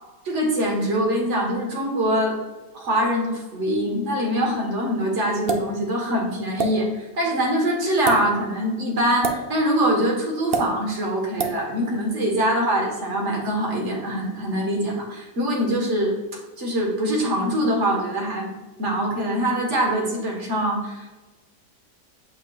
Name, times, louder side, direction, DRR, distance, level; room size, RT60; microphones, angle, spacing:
voice 1, 0.2-2.4 2.7-16.2 16.6-18.5 18.8-21.1, equal, 45° right, -1 dB, 1.6 m, -23 dB
sound 1, 5.5-5.7 6.6-6.7 7.9-8.2 9.2-9.4 10.5-10.7 11.4-11.6, right 5 dB, 85° right, 0.5 m, -23 dB
8.2 x 5.3 x 2.3 m, 1.2 s
omnidirectional pair, 1.9 m